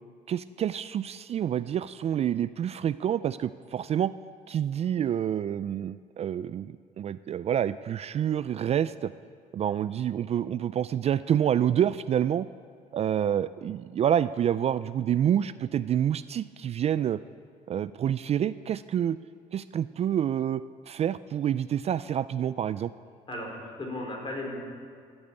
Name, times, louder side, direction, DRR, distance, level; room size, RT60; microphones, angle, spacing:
voice 1, 0.3-4.1 4.5-9.1 9.5-12.5 12.9-17.2 17.7-19.2 19.5-22.9, right 10 dB, 45° right, 15 dB, 0.3 m, -28 dB
voice 2, 23.3-24.6, left 1 dB, 35° left, 0 dB, 4.3 m, -35 dB
15.0 x 8.8 x 8.8 m, 2.2 s
cardioid pair, 95°, 15 cm